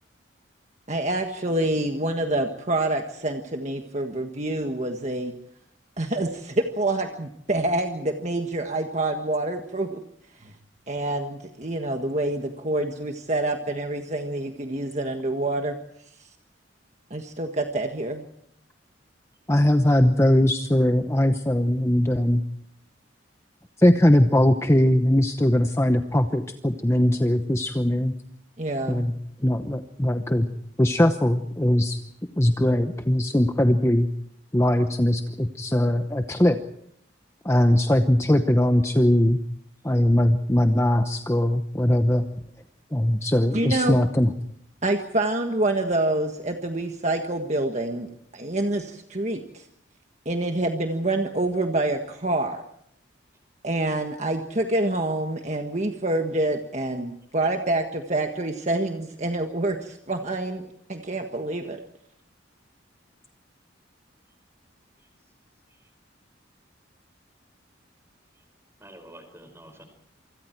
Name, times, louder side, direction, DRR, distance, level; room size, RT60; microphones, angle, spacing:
voice 1, 0.9-5.3 6.0-10.0 10.4-10.5 10.9-15.7 16.2-16.3 17.1-18.3 28.6-29.1 43.5-44.0 44.8-49.7 50.2-52.6 53.6-60.6 60.9-61.8, right 2 dB, 35° right, 4 dB, 1.5 m, -27 dB
voice 2, 19.5-22.4 23.8-28.1 28.9-29.1 29.4-30.5 30.8-32.0 32.4-34.1 34.5-36.6 37.4-39.4 39.8-42.3 42.9-44.3, left 1 dB, 15° left, 6 dB, 0.9 m, -20 dB
voice 3, 68.8-69.8, right 1 dB, 15° right, 7 dB, 5.2 m, -48 dB
27.5 x 25.0 x 4.6 m, 0.71 s
head